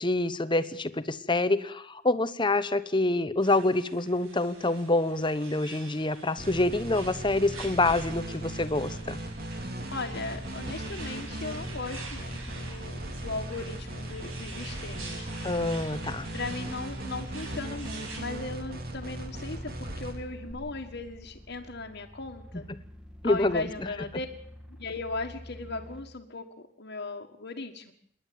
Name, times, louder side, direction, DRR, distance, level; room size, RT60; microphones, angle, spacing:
voice 1, 0.0-9.2 15.4-16.3 22.7-22.8 23.2-23.7, left 2 dB, 25° left, 13 dB, 1.0 m, -26 dB
sound 1, 3.4-18.2, right 3 dB, 90° right, 6.7 m, -47 dB
sound 2, 6.4-20.5, right 1 dB, 50° right, 2.7 m, -38 dB
voice 2, 9.9-15.6 16.3-22.7 23.2-24.3 24.7-26.5 26.8-27.9, left 3 dB, 55° left, -1 dB, 1.7 m, -37 dB
sound 3, 10.4-26.0, equal, 5° right, 1.8 m, -48 dB
27.5 x 11.0 x 9.4 m, 0.69 s
head